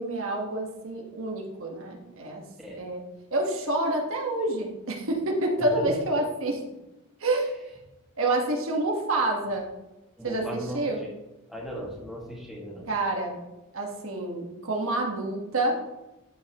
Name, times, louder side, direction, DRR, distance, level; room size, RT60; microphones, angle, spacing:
voice 1, 0.0-2.4 2.7-3.0 3.3-6.6 7.2-7.5 8.2-9.7 10.2-10.4 10.7-11.0 12.9-13.4 13.7-15.8, right 2 dB, 65° right, 1 dB, 1.4 m, -28 dB
voice 2, 5.7-6.2 10.2-11.1 11.5-12.9, equal, ahead, -3 dB, 1.8 m, -37 dB
12.5 x 5.6 x 3.0 m, 0.97 s
head